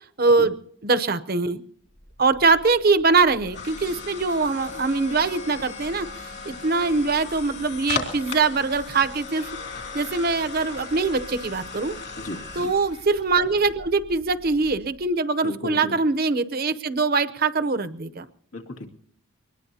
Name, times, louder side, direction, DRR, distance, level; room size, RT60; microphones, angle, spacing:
voice 1, 0.2-0.6 0.8-1.6 2.2-6.1 6.5-9.5 9.9-12.0 12.6-18.2, right 4 dB, 45° right, 12 dB, 0.7 m, -22 dB
sound 1, 2.0-15.0, left 4 dB, 50° left, 2.9 m, -37 dB
voice 2, 12.2-12.7 15.4-16.0 18.5-18.9, left 1 dB, 80° left, 3 dB, 2.3 m, -35 dB
23.5 x 20.0 x 2.8 m, 0.64 s
head